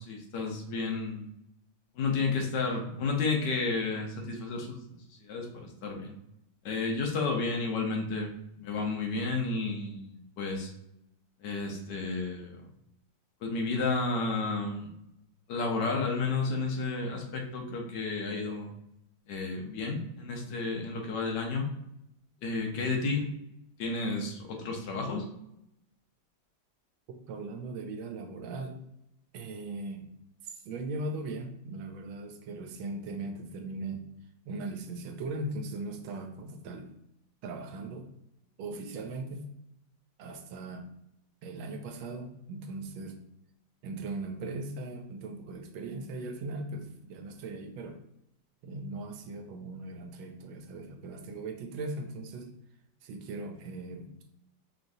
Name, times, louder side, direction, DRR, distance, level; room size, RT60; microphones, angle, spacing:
voice 1, 0.1-1.3 2.0-4.8 5.2-6.1 6.6-8.3 8.6-10.7 11.4-12.6 13.4-14.9 15.5-18.7 19.3-21.7 22.4-23.3 23.8-25.3, left 3 dB, 65° left, 1 dB, 1.3 m, -31 dB
voice 2, 27.1-28.8 29.3-30.1 30.4-34.1 34.5-36.9 37.4-38.1 38.6-39.5 40.2-40.9 41.4-43.2 43.8-48.0 48.6-52.5 53.0-54.2, right 2 dB, 85° right, 5 dB, 1.4 m, -39 dB
5.1 x 3.1 x 2.7 m, 0.81 s
omnidirectional pair, 2.1 m